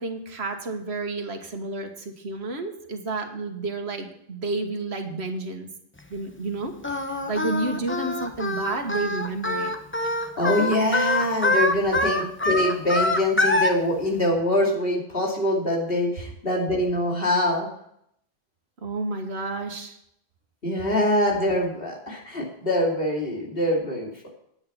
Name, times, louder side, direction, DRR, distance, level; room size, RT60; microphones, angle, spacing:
voice 1, 0.0-5.7 6.1-7.0 7.3-9.8 18.8-20.0, right 3 dB, 85° right, 5 dB, 1.7 m, -30 dB
Singing, 6.8-13.7, left 1 dB, 15° left, 0.8 m, -24 dB
voice 2, 10.4-17.7 20.6-24.3, left 1 dB, 60° left, -2 dB, 3.0 m, -24 dB
10.0 x 9.2 x 5.7 m, 0.72 s
omnidirectional pair, 1.1 m